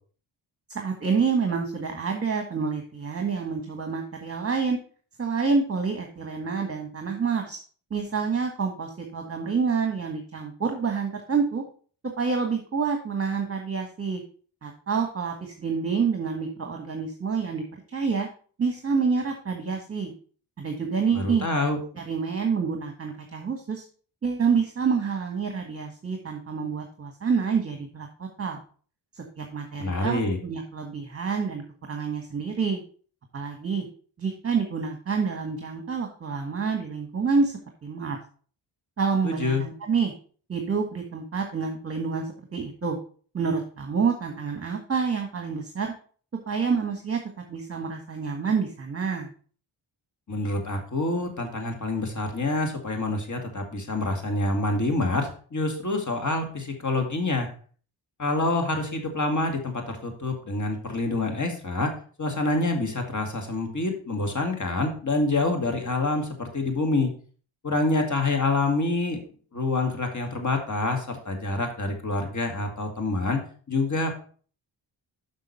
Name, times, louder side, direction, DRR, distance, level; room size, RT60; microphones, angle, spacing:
voice 1, 0.7-4.8 5.2-7.6 7.9-11.6 12.2-14.2 14.6-18.3 18.6-20.1 20.6-21.4 21.9-23.8 24.2-28.6 29.1-31.6 31.9-32.8 33.3-33.8 34.2-37.5 37.8-38.2 39.0-40.1 40.5-43.0 43.3-45.9 46.5-47.2 47.5-49.3, right 5 dB, 30° right, 3 dB, 1.5 m, -28 dB
voice 2, 21.1-21.8 29.8-30.4 39.2-39.6 50.3-57.5 58.2-67.1 67.6-69.2 69.5-73.4 73.7-74.1, left 2 dB, 35° left, 4 dB, 2.2 m, -27 dB
6.4 x 6.1 x 4.2 m, 0.43 s
supercardioid pair, 45°, 49 cm